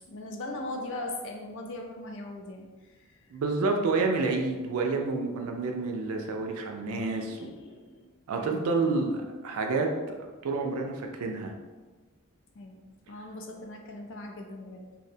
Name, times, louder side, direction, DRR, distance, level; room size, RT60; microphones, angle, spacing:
voice 1, 0.1-2.7 6.9-8.0 8.4-8.9 12.6-12.8 13.1-14.8, left 2 dB, 60° left, 2 dB, 0.4 m, -40 dB
voice 2, 3.3-7.5 8.3-10.2 10.4-11.5, right 3 dB, 70° right, 3 dB, 0.4 m, -29 dB
2.6 x 2.1 x 2.6 m, 1.3 s
head